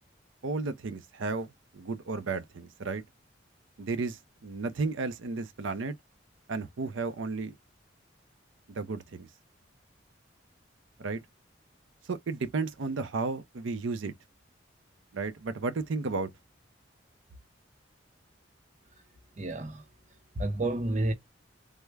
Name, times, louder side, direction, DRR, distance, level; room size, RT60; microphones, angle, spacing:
voice 1, 0.4-3.0 3.8-6.0 6.5-7.6 8.7-9.3 11.0-11.2 12.1-14.1 15.1-16.3, right 3 dB, 85° right, 0.5 m, -33 dB
voice 2, 19.4-19.9 20.3-21.1, right 2 dB, 40° right, 0.6 m, -30 dB
3.4 x 2.0 x 3.3 m
head